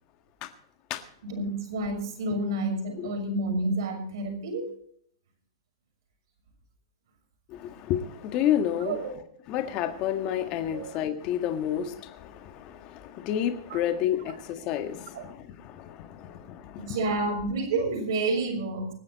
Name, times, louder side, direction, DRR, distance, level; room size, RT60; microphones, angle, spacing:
voice 1, 1.2-4.6 8.8-9.1 10.7-10.8 11.7-11.8 13.7-13.8 15.1-15.2 16.8-18.9, right 2 dB, 60° right, 4 dB, 6.4 m, -29 dB
voice 2, 7.5-9.2 9.5-16.9, left 10 dB, 30° left, 6 dB, 1.7 m, -30 dB
25.0 x 9.8 x 4.2 m, 0.63 s
hypercardioid pair, 155°, 3 cm